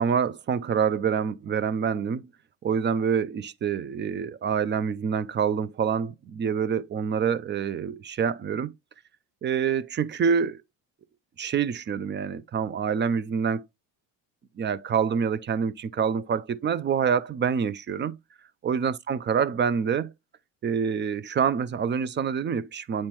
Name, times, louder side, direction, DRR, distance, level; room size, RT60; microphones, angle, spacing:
voice 1, 0.0-2.3 2.6-8.7 9.4-10.6 11.4-13.7 14.6-18.2 18.6-20.1 20.6-23.1, right 7 dB, 25° right, 0.4 m, -26 dB
8.8 x 4.3 x 3.0 m
cardioid pair, 120°, 45 cm